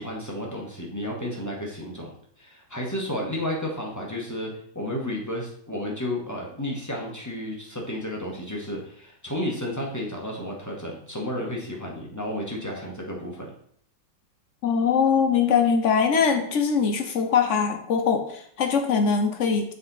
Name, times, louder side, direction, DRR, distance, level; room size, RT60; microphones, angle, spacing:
voice 1, 0.0-2.1 2.4-13.5, left 1 dB, 10° left, -2 dB, 1.0 m, -32 dB
voice 2, 14.6-19.7, left 6 dB, 60° left, 5 dB, 0.8 m, -22 dB
7.1 x 3.9 x 4.0 m, 0.63 s
omnidirectional pair, 1.8 m